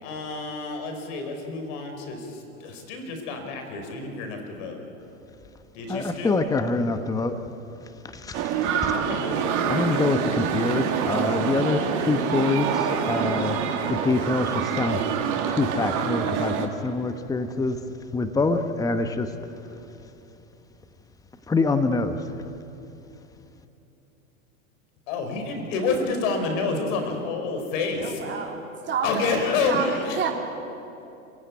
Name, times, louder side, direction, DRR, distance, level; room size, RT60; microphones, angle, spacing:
voice 1, 0.0-4.8 5.7-6.4 8.9-10.1 25.1-28.2 29.0-30.3, left 4 dB, 55° left, 5 dB, 5.1 m, -29 dB
voice 2, 5.9-7.3 8.1-8.9 9.7-13.6 13.9-17.8 18.1-19.3 21.5-22.4, left 3 dB, 10° left, 9 dB, 1.1 m, -25 dB
sound 1, 8.3-16.7, right 7 dB, 40° right, 2.6 m, -26 dB
voice 3, 28.0-30.3, right 6 dB, 25° right, 1 dB, 3.2 m, -30 dB
27.5 x 16.5 x 9.7 m, 2.9 s
hypercardioid pair, 115°, 44 cm